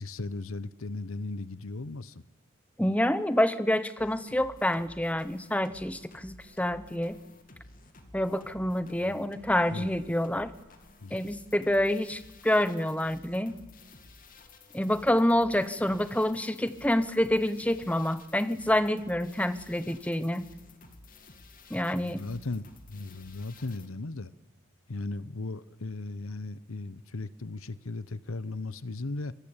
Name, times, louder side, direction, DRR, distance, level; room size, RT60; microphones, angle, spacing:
voice 1, 0.0-2.2 9.1-9.2 9.7-9.9 11.0-11.2 22.0-24.3 24.9-29.3, left 2 dB, 80° left, 1.0 m, -37 dB
voice 2, 2.8-7.2 8.1-10.5 11.1-13.6 14.7-20.5 21.7-22.2, left 1 dB, 5° left, 1.0 m, -27 dB
sound 1, 4.0-23.9, left 2 dB, 40° left, 2.7 m, -53 dB
26.0 x 24.0 x 8.9 m
head